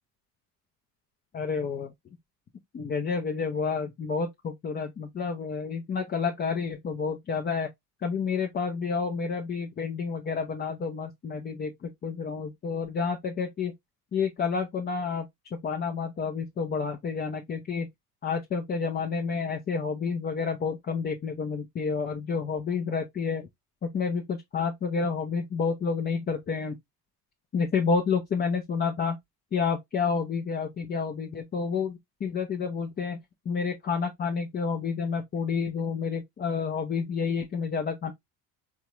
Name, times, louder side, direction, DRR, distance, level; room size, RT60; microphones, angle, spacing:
voice 1, 1.3-1.9 2.7-7.7 8.0-13.7 14.1-17.9 18.2-23.5 23.8-26.8 27.5-29.2 29.5-33.2 33.5-38.1, left 5 dB, 20° left, 0.5 m, -29 dB
3.6 x 2.2 x 2.9 m
hypercardioid pair, 70°, 47 cm